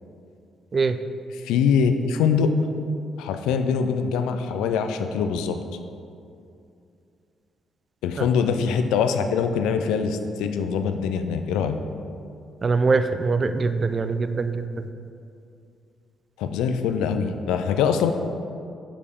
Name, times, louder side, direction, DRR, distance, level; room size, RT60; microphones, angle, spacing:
voice 1, 1.3-2.5 3.2-5.6 8.0-11.8 16.4-18.1, left 6 dB, 80° left, 8 dB, 0.4 m, -23 dB
voice 2, 12.6-14.6, right 4 dB, 40° right, 10 dB, 0.4 m, -22 dB
5.2 x 4.7 x 5.2 m, 2.5 s
hypercardioid pair, 50°, 0 cm